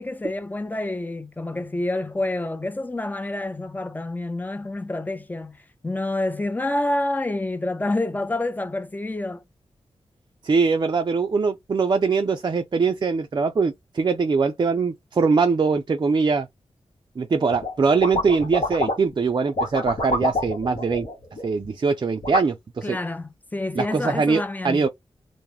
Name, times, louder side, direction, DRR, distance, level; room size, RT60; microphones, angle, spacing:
voice 1, 0.0-9.4 22.8-24.9, left 2 dB, 15° left, 0.5 m, -28 dB
voice 2, 10.4-16.5 17.2-21.1 21.4-23.0 23.8-24.9, right 4 dB, 40° right, 0.4 m, -22 dB
sound 1, 17.5-17.7 18.0-19.1 19.4-21.7 22.2-22.4, left 1 dB, 65° left, 1.0 m, -27 dB
2.2 x 2.0 x 3.1 m
cardioid pair, 50°, 11 cm